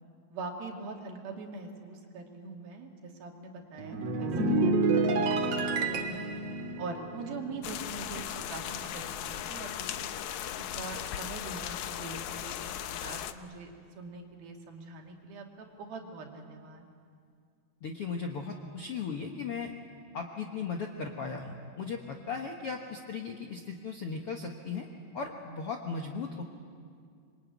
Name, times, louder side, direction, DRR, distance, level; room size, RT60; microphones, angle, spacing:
voice 1, 0.3-5.1 5.4-6.2 6.8-10.1 10.8-13.7 14.0-16.9, right 3 dB, 70° right, 1 dB, 4.3 m, -43 dB
sound 1, 3.8-8.4 8.7-9.0, right 3 dB, 50° right, 2.2 m, -29 dB
sound 2, 7.6-13.3, left 10 dB, 85° left, 1.6 m, -37 dB
voice 2, 17.8-19.7 20.1-24.9 25.1-26.4, left 5 dB, 60° left, 2 dB, 1.5 m, -37 dB
26.5 x 23.5 x 9.3 m, 2.2 s
omnidirectional pair, 4.5 m